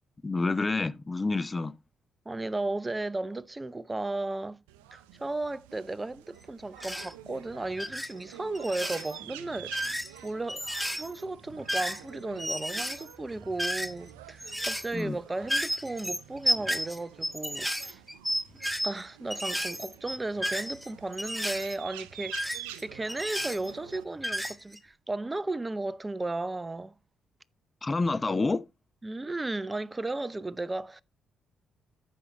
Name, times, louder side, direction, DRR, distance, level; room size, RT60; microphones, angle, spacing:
voice 1, 0.2-1.7 14.9-15.2 27.8-28.6, left 3 dB, 30° left, 0.7 m, -28 dB
voice 2, 2.3-4.6 4.9-18.0 18.8-26.9 29.0-31.0, right 2 dB, 25° right, 0.7 m, -35 dB
sound 1, 4.7-24.0, right 13 dB, 90° right, 0.5 m, -49 dB
sound 2, 6.8-7.1 7.7-8.1 8.5-9.2 9.6-12.1 12.4-14.1 14.4-15.0 15.4-19.0 19.3-21.8 22.3-24.0 24.2-24.8, equal, 5° right, 1.5 m, -32 dB
14.0 x 5.6 x 2.9 m
hypercardioid pair, 50°, 0 cm